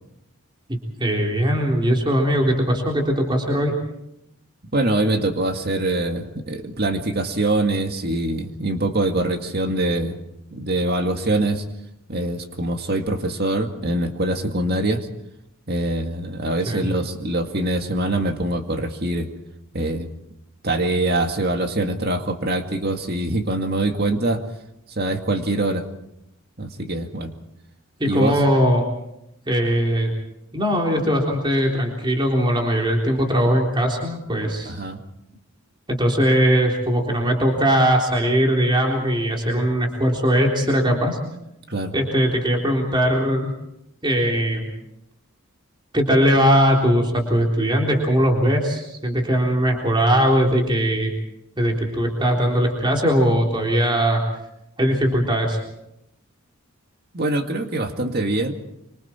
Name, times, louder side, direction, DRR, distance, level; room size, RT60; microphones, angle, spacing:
voice 1, 0.7-3.7 16.7-16.9 28.0-28.9 29.5-30.1 30.5-34.7 35.9-41.2 41.9-43.5 44.0-44.7 45.9-51.1 51.6-54.2 54.8-55.6, equal, 20° right, 0 dB, 3.6 m, -20 dB
voice 2, 4.7-10.2 10.5-11.6 12.1-15.1 15.7-19.3 19.7-20.1 20.6-24.4 24.9-25.8 26.6-27.3 28.0-28.4 34.6-35.0 41.7-41.9 57.1-58.5, right 2 dB, 45° right, 5 dB, 2.1 m, -24 dB
26.0 x 25.5 x 4.5 m, 0.82 s
head